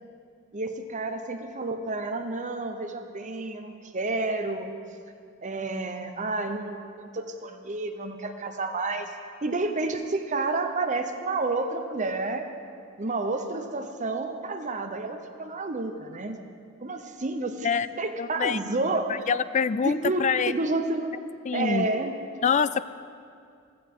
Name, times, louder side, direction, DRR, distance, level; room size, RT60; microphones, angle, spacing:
voice 1, 0.5-4.7 5.4-9.1 9.4-12.5 13.0-16.4 16.8-17.7 18.0-19.3 19.8-21.2 21.5-22.1, right 3 dB, 35° right, 6 dB, 0.9 m, -30 dB
voice 2, 18.2-18.6 19.3-20.5 21.5-21.9 22.4-22.8, left 6 dB, 35° left, 15 dB, 0.3 m, -25 dB
15.5 x 13.5 x 3.8 m, 2.3 s
head